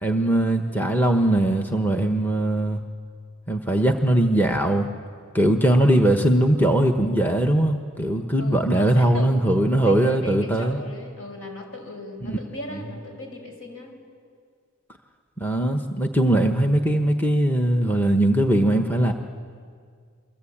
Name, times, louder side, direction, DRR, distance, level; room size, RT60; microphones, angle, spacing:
voice 1, 0.0-2.8 3.5-4.9 5.3-10.8 12.2-12.4 15.4-19.1, right 1 dB, 10° left, 4 dB, 1.1 m, -20 dB
voice 2, 8.4-9.5 9.8-14.0, left 1 dB, 65° left, 3 dB, 5.5 m, -37 dB
29.0 x 23.0 x 8.7 m, 2.1 s
head